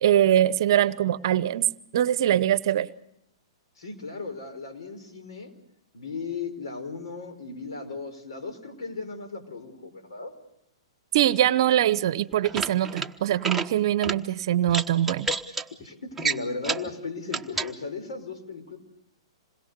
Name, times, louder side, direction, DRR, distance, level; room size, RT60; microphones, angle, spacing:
voice 1, 0.0-1.7 1.9-2.9 11.1-15.3, right 11 dB, 55° right, 17 dB, 0.8 m, -22 dB
voice 2, 3.8-5.5 5.9-10.3 15.8-18.8, left 4 dB, 75° left, 6 dB, 4.8 m, -36 dB
sound 1, 12.3-13.1 13.4-13.7 14.0-14.2 14.7-15.6 16.2-16.9 17.3-17.7, right 4 dB, 5° right, 1.2 m, -29 dB
27.0 x 21.5 x 6.8 m, 0.80 s
hypercardioid pair, 120°, 3 cm